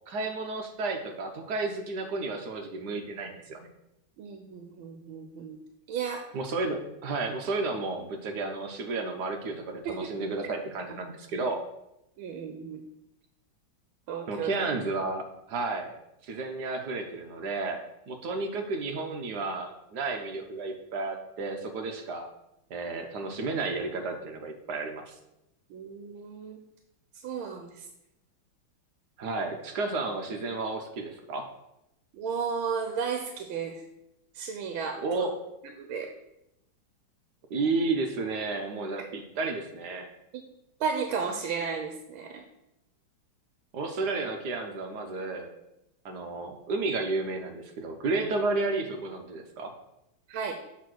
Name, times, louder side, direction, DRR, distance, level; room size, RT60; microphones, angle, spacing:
voice 1, 0.1-3.6 6.3-11.6 14.3-16.0 16.2-17.8 18.1-22.3 22.7-25.2 29.2-31.5 35.0-35.3 37.5-40.1 43.7-45.5 46.0-49.7, right 3 dB, 60° right, 4 dB, 1.3 m, -32 dB
voice 2, 4.2-5.6 5.9-6.2 9.8-10.1 11.3-11.4 12.2-12.8 14.1-14.5 25.7-26.6 27.2-27.9 32.1-33.8 34.3-35.3 35.6-36.1 40.3-40.4 40.8-42.4 50.3-50.6, right 6 dB, 80° right, 4 dB, 1.5 m, -34 dB
7.3 x 4.2 x 6.1 m, 0.87 s
omnidirectional pair, 2.3 m